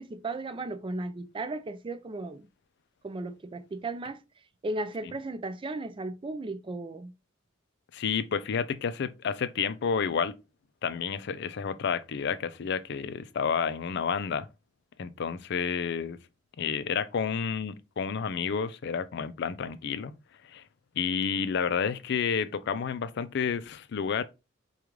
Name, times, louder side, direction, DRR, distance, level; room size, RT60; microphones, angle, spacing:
voice 1, 0.0-2.4 3.0-4.2 4.6-7.1, right 2 dB, 25° right, 0.4 m, -35 dB
voice 2, 7.9-10.4 10.8-14.5 15.0-16.2 16.6-20.1 20.5-20.6 21.0-24.2, left 6 dB, 60° left, 0.4 m, -30 dB
4.9 x 2.4 x 3.0 m
head